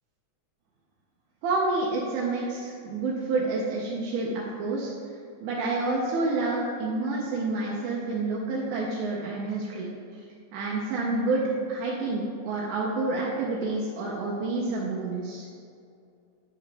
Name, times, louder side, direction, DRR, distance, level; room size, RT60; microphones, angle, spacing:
voice 1, 1.4-4.9 5.4-9.9 10.5-11.4 11.7-15.5, right 3 dB, 90° right, -4 dB, 2.2 m, -28 dB
8.6 x 4.7 x 3.3 m, 2.4 s
omnidirectional pair, 3.4 m